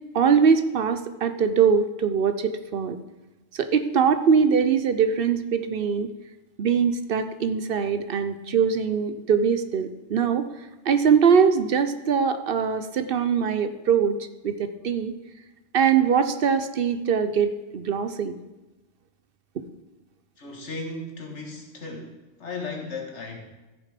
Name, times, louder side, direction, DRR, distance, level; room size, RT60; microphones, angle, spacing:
voice 1, 0.1-3.0 3.5-6.1 6.6-10.5 10.9-14.2 14.4-15.2 15.7-18.3, right 6 dB, 60° right, 10 dB, 0.8 m, -22 dB
voice 2, 20.4-23.4, left 3 dB, 85° left, 2 dB, 2.0 m, -36 dB
14.0 x 6.6 x 5.1 m, 1.1 s
omnidirectional pair, 1.2 m